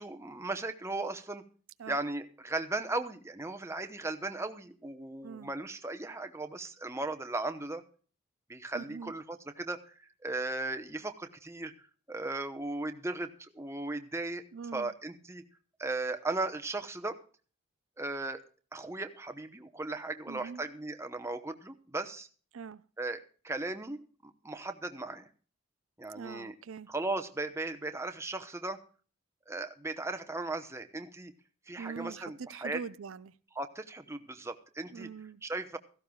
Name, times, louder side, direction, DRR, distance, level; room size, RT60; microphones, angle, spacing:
voice 1, 0.0-1.4 1.9-7.8 8.5-9.9 10.2-14.5 14.7-15.4 15.8-17.2 18.0-18.4 18.7-22.3 23.0-25.3 26.0-26.5 26.9-28.8 29.5-31.3 31.7-32.8 33.6-35.1 35.4-35.8, right 2 dB, 15° right, 0.9 m, -37 dB
voice 2, 5.2-5.5 8.7-9.1 14.5-14.9 20.3-20.6 22.5-22.8 26.0-26.9 31.8-33.3 34.9-35.4, right 6 dB, 85° right, 0.5 m, -43 dB
17.0 x 14.5 x 2.3 m
head